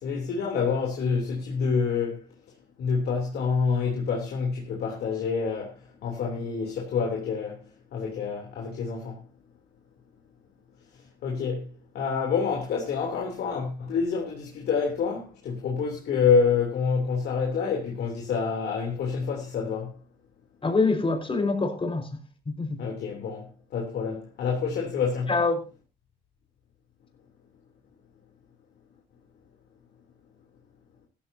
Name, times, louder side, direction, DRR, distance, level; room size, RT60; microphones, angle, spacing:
voice 1, 0.0-2.2 2.8-7.6 7.9-9.2 11.2-20.0 22.8-25.3, left 5 dB, 70° left, 3.3 m, -27 dB
voice 2, 20.6-22.1 22.4-22.8 25.3-25.6, left 3 dB, 30° left, 5.0 m, -25 dB
16.0 x 14.5 x 2.8 m
supercardioid pair, 60°, 17 cm